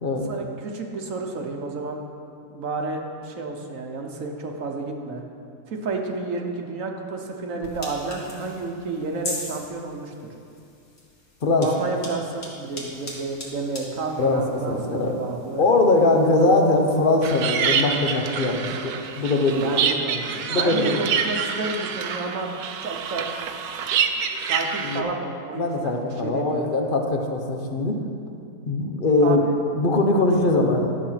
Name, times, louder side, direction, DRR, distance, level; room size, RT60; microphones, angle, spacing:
voice 1, 0.3-2.0 2.5-5.2 5.7-10.1 11.6-15.6 19.5-22.5 22.8-23.3 24.4-26.8 29.2-29.5, right 3 dB, 60° right, 2 dB, 1.3 m, -31 dB
sound 1, 7.6-17.3, left 2 dB, 65° left, 2.3 m, -40 dB
voice 2, 14.7-15.2 15.6-19.7 20.5-21.0 24.8-25.0 25.6-28.0 28.7-29.4 29.8-30.9, left 2 dB, 40° left, 3 dB, 1.0 m, -21 dB
sound 2, 17.2-25.0, right 7 dB, 80° right, 1.2 m, -27 dB
11.5 x 7.3 x 5.7 m, 2.5 s
omnidirectional pair, 1.6 m